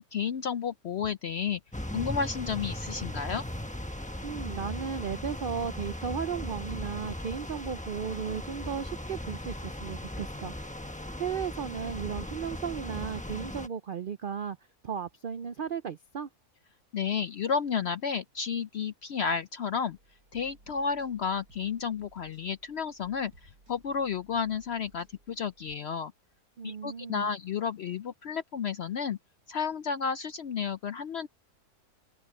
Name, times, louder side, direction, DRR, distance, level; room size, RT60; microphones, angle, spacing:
voice 1, 0.0-1.6 1.9-3.4 16.9-20.0 20.3-23.3 23.7-26.1 26.6-29.2 29.5-31.3, left 6 dB, 65° left, 0.6 m, -32 dB
sound 1, 1.7-13.7, left 1 dB, 5° left, 0.8 m, -38 dB
voice 2, 4.2-10.5 11.2-14.6 14.8-16.3 26.6-27.3, right 7 dB, 70° right, 0.5 m, -35 dB
sound 2, 19.9-25.8, right 2 dB, 90° right, 6.6 m, -59 dB
omnidirectional pair, 1.7 m